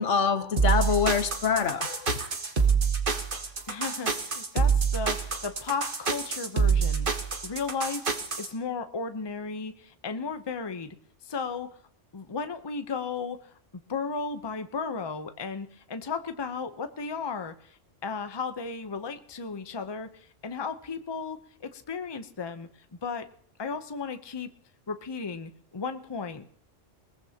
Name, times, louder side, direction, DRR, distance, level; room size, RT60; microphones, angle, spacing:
voice 1, 0.0-2.1, left 6 dB, 80° left, 1.3 m, -25 dB
sound 1, 0.6-8.5, right 5 dB, 45° right, 1.5 m, -26 dB
voice 2, 3.7-7.1 7.4-8.1 8.4-10.9 11.2-11.8 12.1-23.3 23.6-24.5 24.9-26.5, left 5 dB, 25° left, 0.7 m, -35 dB
21.0 x 19.0 x 2.9 m
omnidirectional pair, 1.3 m